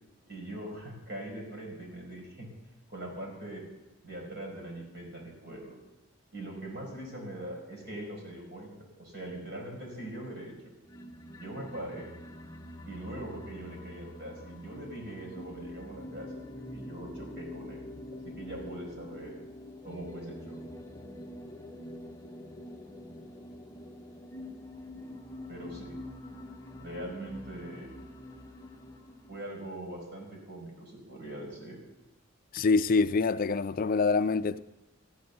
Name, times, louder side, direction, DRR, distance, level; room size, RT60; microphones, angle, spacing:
voice 1, 0.3-2.5 2.9-3.6 4.0-5.7 6.3-10.7 11.4-12.1 12.8-17.8 18.2-19.4 19.8-20.6 25.5-26.0 26.8-27.9 29.3-31.8, right 1 dB, 55° right, 5.2 m, -42 dB
sound 1, 10.8-29.5, left 1 dB, 15° left, 0.9 m, -45 dB
voice 2, 32.5-34.6, left 4 dB, 45° left, 0.4 m, -25 dB
13.5 x 10.5 x 6.7 m
head